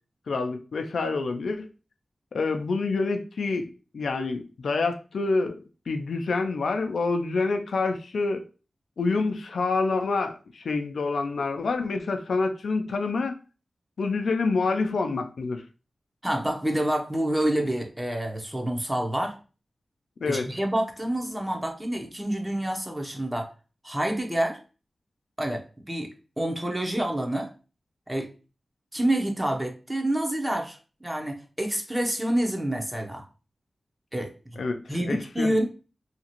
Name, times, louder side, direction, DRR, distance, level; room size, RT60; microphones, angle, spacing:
voice 1, 0.3-1.7 2.3-5.6 5.9-8.4 9.0-13.3 14.0-15.6 20.2-20.5 34.6-35.6, left 3 dB, 85° left, 5 dB, 0.3 m, -27 dB
voice 2, 16.2-19.3 20.3-23.5 23.8-24.6 25.4-26.1 26.4-27.5 28.1-28.3 28.9-33.2 34.1-34.3 34.9-35.6, right 1 dB, 20° right, 3 dB, 0.8 m, -27 dB
2.8 x 2.4 x 2.8 m, 0.34 s
cardioid pair, 40°, 0 cm